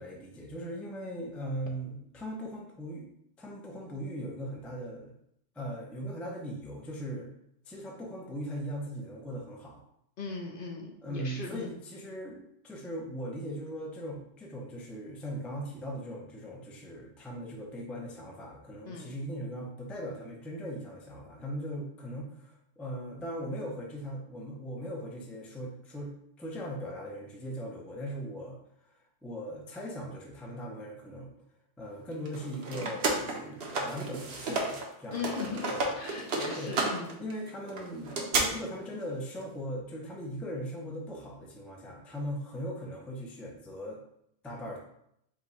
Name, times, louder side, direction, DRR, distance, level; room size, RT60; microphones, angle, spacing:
voice 1, 0.0-3.1 3.4-5.1 5.5-7.3 7.7-9.8 11.0-26.1 26.4-28.6 28.8-31.3 31.8-36.7 37.2-38.1 38.5-44.0 44.4-44.8, equal, ahead, -1 dB, 0.4 m, -39 dB
voice 2, 10.2-11.7 18.9-19.1 35.1-37.2, left 5 dB, 60° left, 1 dB, 0.7 m, -38 dB
sound 1, 32.3-34.9 35.1-38.4, right 3 dB, 60° right, 0.9 m, -32 dB
5.1 x 2.2 x 4.0 m, 0.74 s
omnidirectional pair, 1.2 m